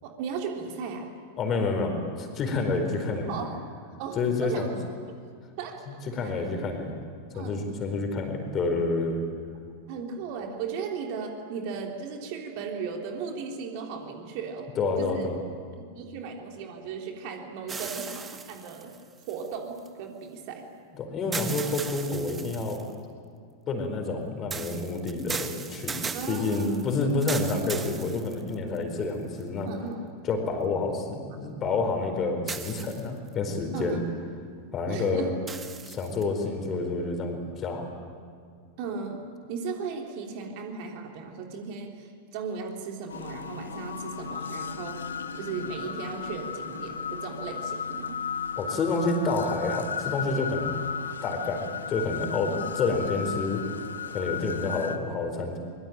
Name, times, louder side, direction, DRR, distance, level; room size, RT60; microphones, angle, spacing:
voice 1, 0.0-1.1 3.3-3.6 4.0-4.9 5.6-6.4 7.3-7.6 9.9-14.7 15.0-15.3 15.9-18.9 19.3-20.6 26.1-26.8 29.6-30.0 33.7-34.0 34.9-35.3 38.8-39.2 39.5-45.0 45.3-48.2 52.5-52.6, right 5 dB, 45° right, 2 dB, 3.3 m, -36 dB
voice 2, 1.4-3.3 4.1-4.7 6.1-6.9 7.3-9.2 14.8-15.4 21.0-22.8 23.7-26.0 26.3-29.7 30.2-34.0 34.7-35.3 35.8-37.9 48.6-50.7 51.2-53.6 54.1-55.6, left 3 dB, 30° left, 5 dB, 4.4 m, -28 dB
sound 1, 17.7-19.9 21.3-22.9 24.5-28.8 29.4-29.5 32.5-33.3 35.5-36.2, right 5 dB, 15° right, 1.3 m, -37 dB
sound 2, 43.1-55.0, left 6 dB, 70° left, 1.2 m, -35 dB
24.0 x 22.5 x 9.0 m, 2.1 s
figure-of-eight pair, 90°, 0 cm